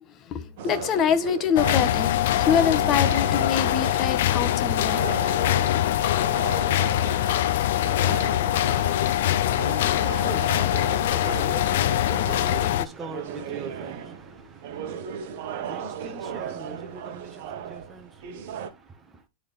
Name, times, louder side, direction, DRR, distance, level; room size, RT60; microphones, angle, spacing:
voice 1, 0.2-5.0, left 8 dB, 35° left, 1.2 m, -25 dB
sound 1, 0.6-18.7, right 8 dB, 60° right, 1.1 m, -37 dB
sound 2, 1.6-12.9, left 13 dB, 70° left, 0.5 m, -23 dB
voice 2, 8.2-19.2, right 3 dB, 15° right, 1.1 m, -43 dB
10.0 x 3.8 x 3.4 m
hypercardioid pair, 115°, 0 cm